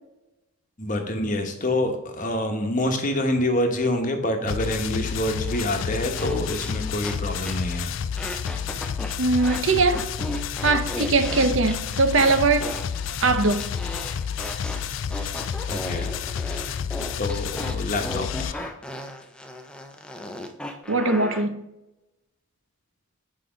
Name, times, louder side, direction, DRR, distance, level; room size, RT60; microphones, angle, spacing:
voice 1, 0.8-7.9 15.7-16.7 17.2-18.7, left 1 dB, 35° left, 1.1 m, -27 dB
sound 1, 4.5-18.5, left 7 dB, 65° left, 0.4 m, -30 dB
sound 2, 5.3-7.2 7.5-7.7 8.2-9.6 9.9-21.5, left 1 dB, 5° left, 0.5 m, -36 dB
voice 2, 9.2-10.0 10.6-12.7 13.2-13.7 20.9-21.6, right 3 dB, 65° right, 0.7 m, -21 dB
8.2 x 4.9 x 5.1 m
head